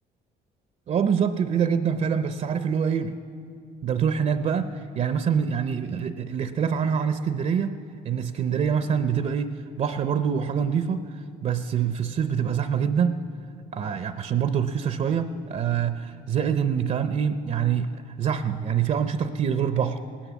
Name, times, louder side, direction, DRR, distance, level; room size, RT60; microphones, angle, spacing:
voice 1, 0.9-3.2 3.8-7.8 8.0-11.1 11.4-13.3 13.7-20.0, right 7 dB, 45° right, 10 dB, 0.6 m, -25 dB
18.0 x 10.0 x 7.4 m, 2.5 s
cardioid pair, 110°, 17 cm